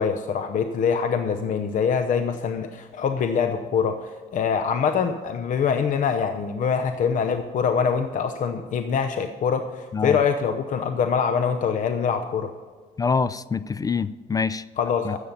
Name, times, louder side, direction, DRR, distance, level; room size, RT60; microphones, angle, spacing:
voice 1, 0.0-12.5 14.8-15.2, left 6 dB, 50° left, 8 dB, 0.8 m, -24 dB
voice 2, 13.0-14.6 15.1-15.2, left 5 dB, 20° left, 17 dB, 0.3 m, -25 dB
13.0 x 8.4 x 5.4 m, 1.5 s
cardioid pair, 110°, 17 cm